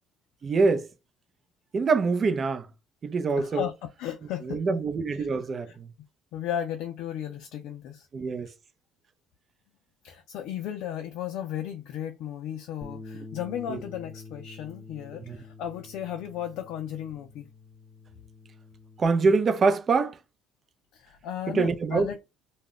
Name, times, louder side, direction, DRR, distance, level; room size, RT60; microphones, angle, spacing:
voice 1, 0.4-0.9 1.7-2.7 3.0-3.6 4.4-5.9 8.1-8.5 13.7-13.8 15.3-15.4 19.0-20.2 21.5-22.1, right 4 dB, 40° right, 0.5 m, -25 dB
voice 2, 3.4-4.8 6.3-8.1 10.0-17.5 20.9-22.3, left 10 dB, 75° left, 0.4 m, -35 dB
Bass guitar, 12.8-19.1, left 3 dB, 25° left, 0.6 m, -46 dB
2.3 x 2.1 x 3.6 m
supercardioid pair, 75°, 0 cm